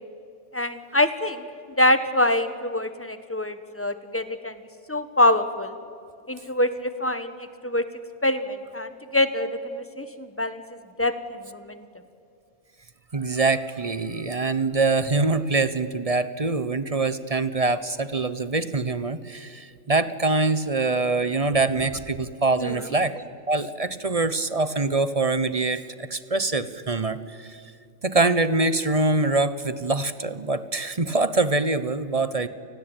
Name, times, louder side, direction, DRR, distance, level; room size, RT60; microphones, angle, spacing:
voice 1, 0.5-1.4 1.8-4.5 4.9-5.7 6.3-7.8 8.2-10.6 11.0-11.1 11.5-11.8 22.6-22.7, left 1 dB, 10° left, 10 dB, 1.3 m, -25 dB
voice 2, 13.1-27.6 28.0-32.5, right 3 dB, 30° right, 14 dB, 0.8 m, -24 dB
29.0 x 19.5 x 9.1 m, 2.5 s
omnidirectional pair, 1.4 m